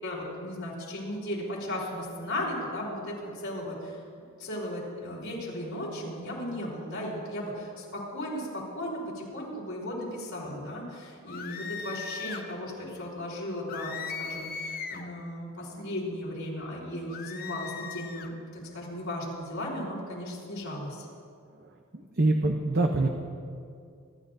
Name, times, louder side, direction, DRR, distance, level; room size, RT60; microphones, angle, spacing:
voice 1, 0.0-4.0 4.4-13.9 14.2-21.1, left 1 dB, 75° left, -6 dB, 3.6 m, -36 dB
sound 1, 11.3-12.5 13.7-15.1 17.1-18.3, left 6 dB, 45° left, 0.8 m, -38 dB
voice 2, 21.6-23.1, right 2 dB, 50° right, 3 dB, 0.7 m, -26 dB
24.5 x 12.0 x 2.7 m, 2.3 s
head